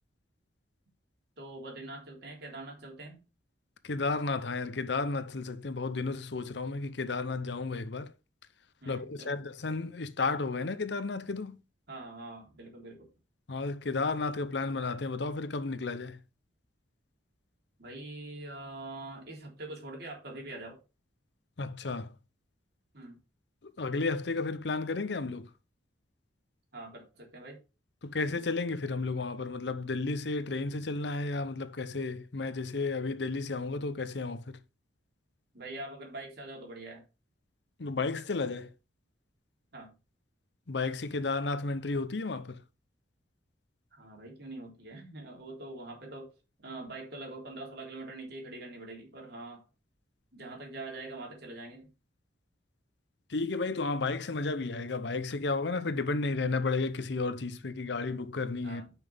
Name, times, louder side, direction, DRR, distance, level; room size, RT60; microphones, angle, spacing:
voice 1, 1.4-3.2 8.8-9.4 11.9-13.1 17.8-20.8 22.9-23.2 26.7-27.6 35.5-37.0 39.7-39.9 43.9-46.3 46.6-49.6 50.3-51.9 58.6-58.9, right 2 dB, 60° right, 3.6 m, -44 dB
voice 2, 3.8-8.1 8.9-11.6 13.5-16.2 21.6-22.1 23.6-25.5 28.0-34.6 37.8-38.7 40.7-42.6 53.3-58.8, left 3 dB, 65° left, 0.7 m, -32 dB
9.3 x 6.0 x 3.5 m
head